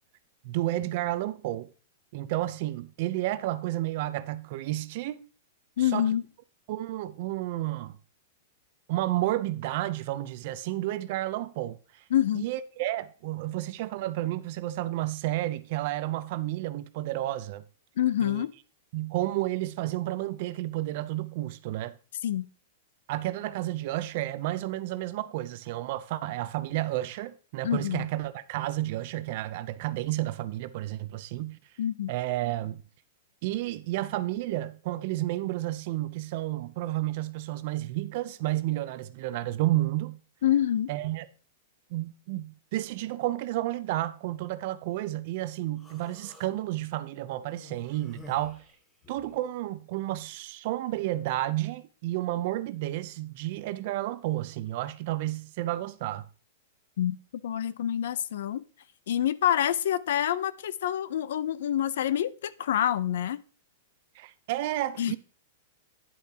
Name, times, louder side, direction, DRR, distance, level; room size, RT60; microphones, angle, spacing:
voice 1, 0.4-1.7 2.1-5.2 5.8-6.1 6.7-8.0 8.9-12.0 12.3-17.6 18.2-18.4 18.9-21.9 23.1-31.6 32.1-32.8 33.4-40.2 40.9-41.3 41.9-48.6 49.1-56.3 64.2-65.2, right 15 dB, 45° right, 0.6 m, -31 dB
voice 2, 5.8-6.2 12.1-12.4 18.0-18.5 22.2-22.5 27.6-28.1 31.8-32.1 40.4-40.9 57.0-57.2 57.4-58.6 59.1-63.4 65.0-65.2, left 11 dB, 70° left, 0.5 m, -27 dB
Human voice, 45.8-46.5 47.4-49.4, equal, 15° left, 1.7 m, -49 dB
10.0 x 8.3 x 2.9 m
supercardioid pair, 165°, 0 cm